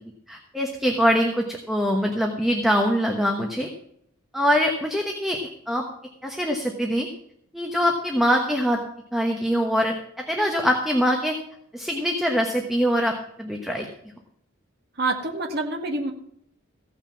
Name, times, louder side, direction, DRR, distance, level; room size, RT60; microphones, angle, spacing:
voice 1, 0.3-3.7 4.3-5.4 5.7-5.9 6.2-7.1 7.5-8.8 9.1-11.4 11.7-13.9, equal, ahead, 2 dB, 1.2 m, -23 dB
voice 2, 15.0-16.1, right 2 dB, 55° right, 1 dB, 1.8 m, -26 dB
16.0 x 6.0 x 7.2 m, 0.72 s
head